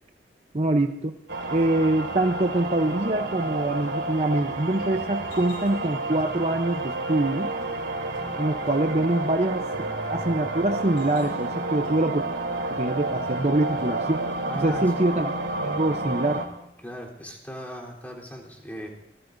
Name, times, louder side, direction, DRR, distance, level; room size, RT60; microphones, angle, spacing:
voice 1, 0.5-1.1 1.5-7.5 8.4-9.6 10.1-12.2 12.7-14.2 14.6-15.3 15.6-16.4, right 2 dB, 35° right, 5 dB, 0.8 m, -24 dB
sound 1, 1.3-16.5, right 2 dB, 80° right, 2.9 m, -30 dB
sound 2, 4.8-16.1, left 2 dB, 50° left, 2.9 m, -46 dB
voice 2, 14.5-14.8 16.8-18.9, equal, 10° left, -4 dB, 3.6 m, -38 dB
26.5 x 20.0 x 2.7 m, 0.82 s
head